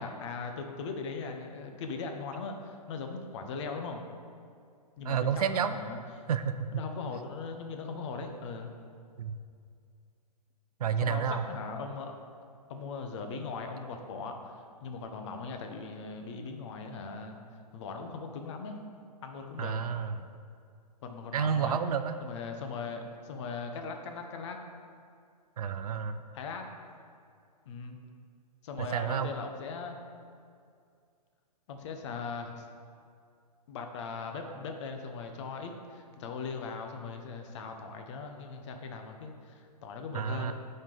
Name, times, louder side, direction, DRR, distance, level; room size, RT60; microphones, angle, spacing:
voice 1, 0.0-4.0 5.0-6.3 6.7-8.7 10.9-12.1 12.7-14.5 14.8-17.4 17.7-18.8 19.2-19.8 21.0-21.8 22.2-24.6 26.3-26.7 27.7-28.0 28.6-30.0 31.7-32.7 33.7-40.5, left 4 dB, 45° left, 4 dB, 0.8 m, -39 dB
voice 2, 5.1-5.8 6.3-6.7 9.2-9.3 10.8-11.4 19.6-20.1 21.3-22.2 25.6-26.2 28.8-29.3 40.1-40.5, right 7 dB, 65° right, 10 dB, 0.4 m, -30 dB
10.5 x 4.4 x 3.3 m, 2.3 s
hypercardioid pair, 125°, 21 cm